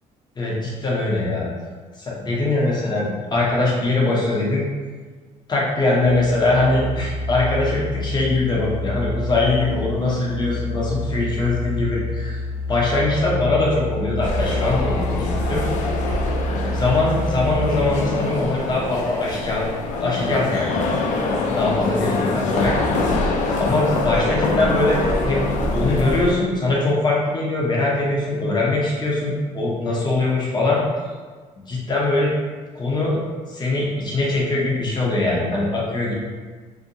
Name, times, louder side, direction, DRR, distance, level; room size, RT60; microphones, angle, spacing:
voice 1, 0.4-1.5 2.0-4.6 5.5-12.4 12.7-15.6 16.0-16.2 16.6-19.7 20.0-20.8 21.5-22.7 23.6-25.5 25.7-30.8 31.5-32.3 32.7-33.2 33.5-36.1, left 2 dB, 30° left, -4 dB, 0.8 m, -22 dB
Musical instrument, 6.0-18.0, left 1 dB, 40° right, 0.4 m, -28 dB
sound 1, 14.2-26.3, left 2 dB, 60° left, 0.4 m, -24 dB
2.7 x 2.1 x 2.6 m, 1.4 s
cardioid pair, 100°, 14 cm